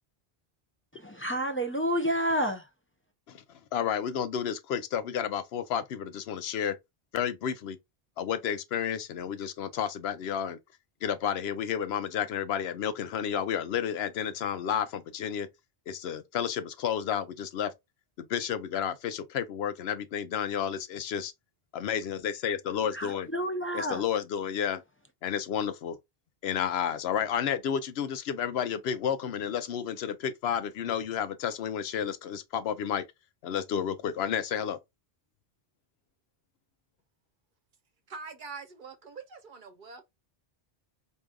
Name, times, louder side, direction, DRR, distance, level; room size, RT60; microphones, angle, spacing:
voice 1, 1.0-2.7 22.9-24.0, equal, 20° left, 0.4 m, -29 dB
voice 2, 3.7-6.7 7.1-7.8 8.2-10.6 11.0-15.5 15.9-17.7 18.2-21.3 21.7-23.3 23.7-24.8 25.2-26.0 26.4-33.0 33.4-34.8, left 8 dB, 80° left, 0.8 m, -31 dB
voice 3, 38.1-40.1, right 4 dB, 55° right, 0.9 m, -44 dB
4.8 x 2.7 x 2.3 m
omnidirectional pair, 1.0 m